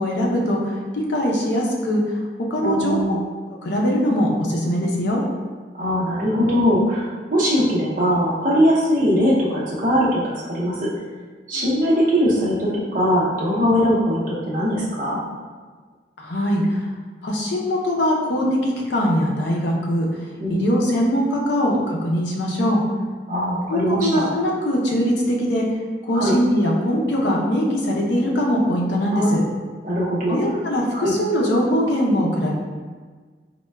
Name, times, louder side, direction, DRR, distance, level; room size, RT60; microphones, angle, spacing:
voice 1, 0.0-2.2 2.5-3.0 3.6-5.2 16.2-16.8 17.2-20.1 20.5-22.8 23.7-25.6 26.0-29.4 30.3-32.5, equal, 80° left, -2 dB, 0.5 m, -21 dB
voice 2, 2.6-3.2 5.8-10.9 11.5-15.2 20.4-20.6 23.3-24.3 26.1-26.3 29.1-29.3 29.8-30.4 30.9-31.1, equal, 50° right, -6 dB, 0.7 m, -21 dB
4.1 x 2.1 x 2.2 m, 1.5 s
head